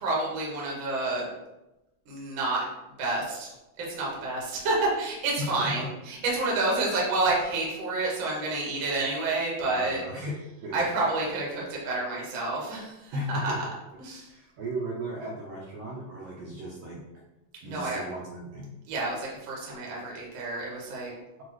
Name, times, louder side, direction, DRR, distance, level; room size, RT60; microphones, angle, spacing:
voice 1, 0.0-1.3 2.0-2.6 3.0-3.5 3.8-10.0 10.7-13.5 14.0-14.3 17.6-18.0 18.9-21.1, right 2 dB, 60° right, -4 dB, 1.3 m, -29 dB
voice 2, 5.4-5.9 9.6-10.3 10.6-10.9 13.1-13.6 14.3-17.0 17.6-18.8, right 1 dB, 75° right, -4 dB, 1.8 m, -35 dB
6.2 x 2.4 x 3.0 m, 0.97 s
omnidirectional pair, 3.9 m